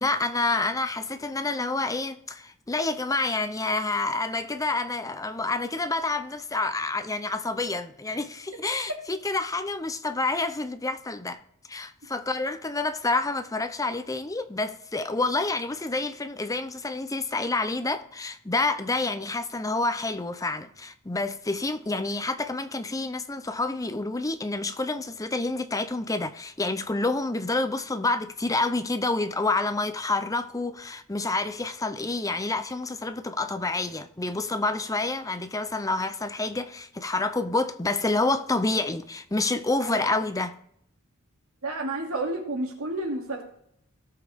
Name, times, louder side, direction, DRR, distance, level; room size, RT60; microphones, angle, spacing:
voice 1, 0.0-11.4 11.7-40.5, left 3 dB, 15° left, 0.6 m, -28 dB
voice 2, 41.6-43.4, right 2 dB, 80° right, 2.7 m, -30 dB
18.0 x 6.1 x 3.6 m
head